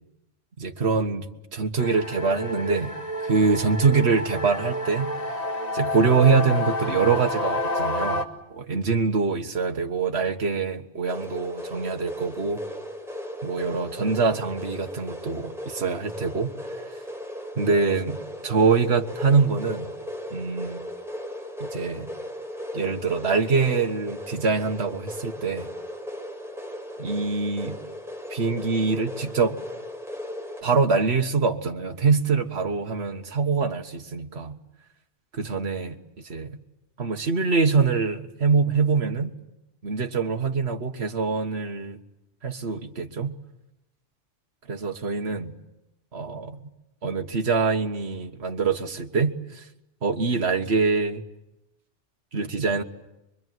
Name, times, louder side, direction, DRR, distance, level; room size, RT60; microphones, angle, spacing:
voice 1, 0.6-2.9 3.2-5.4 5.7-8.3 8.5-12.6 13.4-16.8 17.6-18.2 18.4-19.9 20.3-20.8 21.6-22.1 22.7-25.7 27.0-27.8 28.3-29.6 30.6-34.6 35.3-36.6 37.0-39.3 39.8-42.0 42.4-43.3 44.7-45.5 46.1-46.6 47.0-49.7 50.0-51.2 52.3-52.8, right 4 dB, 60° right, 5 dB, 1.8 m, -24 dB
sound 1, 1.8-8.3, left 1 dB, 35° left, 1.7 m, -29 dB
sound 2, 11.1-30.6, left 1 dB, ahead, 4.3 m, -37 dB
25.0 x 23.5 x 9.4 m, 0.92 s
omnidirectional pair, 1.3 m